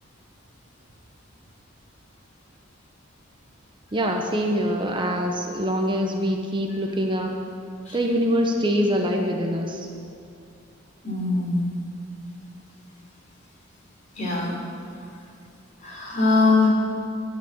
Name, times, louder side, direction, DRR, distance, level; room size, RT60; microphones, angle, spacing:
voice 1, 3.9-7.4 7.9-9.9, equal, 25° right, 2 dB, 0.9 m, -24 dB
voice 2, 11.0-11.6 14.1-14.5 15.8-16.7, left 3 dB, 40° left, -4 dB, 3.6 m, -21 dB
11.0 x 9.1 x 8.3 m, 2.6 s
head